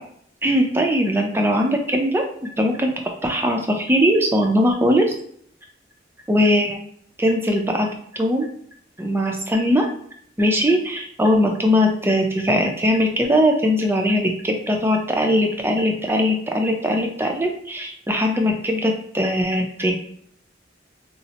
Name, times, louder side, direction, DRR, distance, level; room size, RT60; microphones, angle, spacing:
voice 1, 0.4-2.9 3.2-5.0 6.3-6.8 7.2-7.9 8.1-8.5 9.0-9.9 10.4-19.9, equal, 10° right, 2 dB, 0.4 m, -20 dB
4.0 x 2.1 x 2.8 m, 0.64 s
head